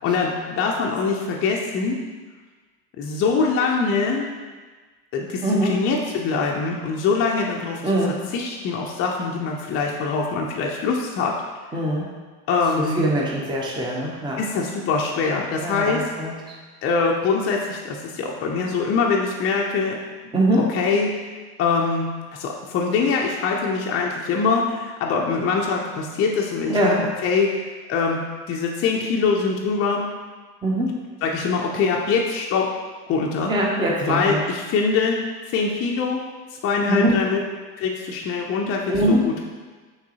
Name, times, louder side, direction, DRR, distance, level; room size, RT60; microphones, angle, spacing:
voice 1, 0.0-2.0 3.0-4.3 5.1-7.8 8.3-11.3 12.5-13.1 14.4-16.1 16.8-20.0 20.7-21.1 21.6-27.0 27.2-27.6 27.9-28.2 28.5-30.1 31.2-32.7 33.1-33.5 34.0-36.2 36.6-37.4 37.8-39.5, left 4 dB, 30° left, -1 dB, 0.5 m, -23 dB
voice 2, 5.4-5.8 7.8-8.2 11.7-12.1 13.0-14.4 15.6-16.3 20.3-20.6 26.7-27.1 30.6-30.9 33.5-34.4 36.9-37.1 38.9-39.2, right 1 dB, 10° right, -3 dB, 0.7 m, -22 dB
5.9 x 3.1 x 2.8 m, 1.4 s
hypercardioid pair, 70°, 48 cm